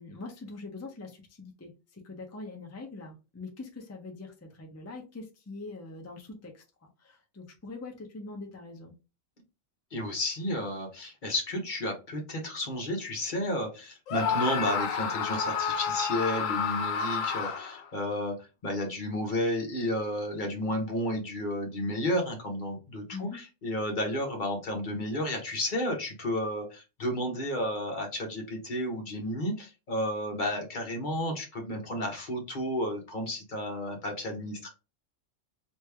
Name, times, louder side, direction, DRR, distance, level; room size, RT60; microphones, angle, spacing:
voice 1, 0.0-8.9 23.1-23.4, left 3 dB, 15° left, 2 dB, 0.5 m, -43 dB
voice 2, 9.9-18.3 18.6-34.7, left 1 dB, 40° left, 1 dB, 1.1 m, -32 dB
Screaming, 14.1-17.9, left 6 dB, 85° left, 1.0 m, -30 dB
3.1 x 2.6 x 3.3 m, 0.30 s
omnidirectional pair, 1.3 m